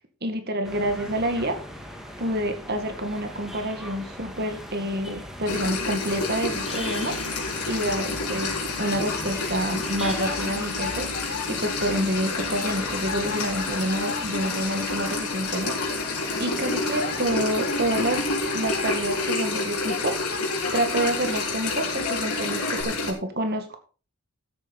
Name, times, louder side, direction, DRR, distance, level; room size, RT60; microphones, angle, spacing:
voice 1, 0.2-1.6 2.2-7.2 7.7-23.8, right 1 dB, 45° right, 6 dB, 2.0 m, -28 dB
sound 1, 0.6-19.3, equal, ahead, 2.0 m, -40 dB
sound 2, 5.5-23.1, left 3 dB, 90° left, 4.0 m, -29 dB
sound 3, 8.8-22.8, left 4 dB, 45° left, 1.8 m, -38 dB
13.5 x 8.6 x 4.2 m, 0.37 s
head